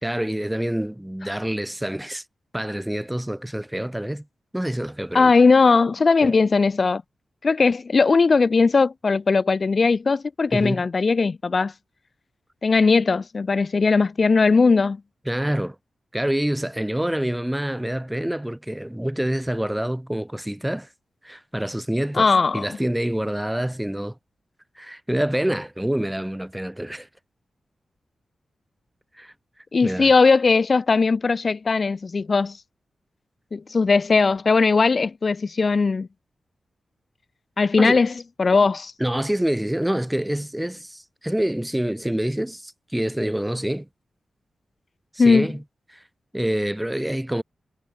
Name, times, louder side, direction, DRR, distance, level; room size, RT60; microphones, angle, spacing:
voice 1, 0.0-2.2 2.5-4.3 4.5-5.3 6.2-6.3 10.5-10.8 15.3-15.8 16.1-20.9 21.2-24.1 24.8-27.1 29.2-29.3 29.8-30.1 37.8-38.0 39.0-43.9 45.1-45.6 45.9-46.0 46.3-47.4, right 1 dB, 5° right, 0.9 m, -26 dB
voice 2, 5.1-7.0 7.4-11.7 12.6-15.0 22.1-22.7 29.7-32.6 33.5-36.1 37.6-38.1 38.4-38.9 45.2-45.5, left 4 dB, 45° left, 0.4 m, -19 dB
wide cardioid pair, 90°, 0 cm